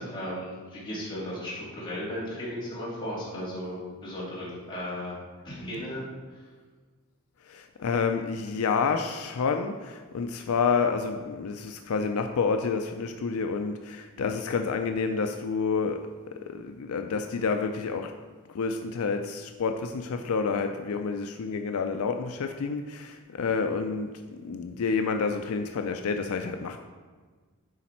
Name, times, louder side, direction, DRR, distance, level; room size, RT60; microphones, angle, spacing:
voice 1, 0.0-5.1 5.4-6.1, equal, 20° left, -8 dB, 2.5 m, -35 dB
voice 2, 7.4-16.0 16.3-18.1 18.5-24.1 24.4-26.8, left 5 dB, 75° left, 6 dB, 0.4 m, -29 dB
10.5 x 4.1 x 4.3 m, 1.4 s
head